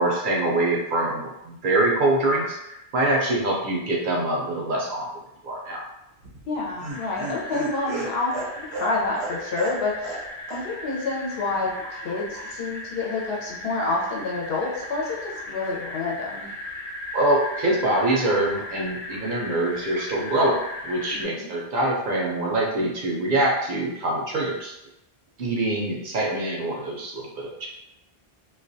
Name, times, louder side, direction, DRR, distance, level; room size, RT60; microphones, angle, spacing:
voice 1, 0.0-5.1 5.4-5.8 17.1-20.6 20.8-24.7 25.4-27.7, right 1 dB, 60° right, -2 dB, 0.7 m, -24 dB
Laughter, 6.2-10.2 10.5-10.6 10.9-11.0, right 3 dB, 85° right, 0.9 m, -34 dB
voice 2, 6.5-8.4 8.8-10.2 10.5-16.5 21.1-21.5, left 3 dB, 75° left, -3 dB, 0.9 m, -28 dB
sound 1, 6.9-21.3, left 1 dB, 35° left, 0.5 m, -37 dB
2.3 x 2.2 x 2.5 m, 0.86 s
omnidirectional pair, 1.0 m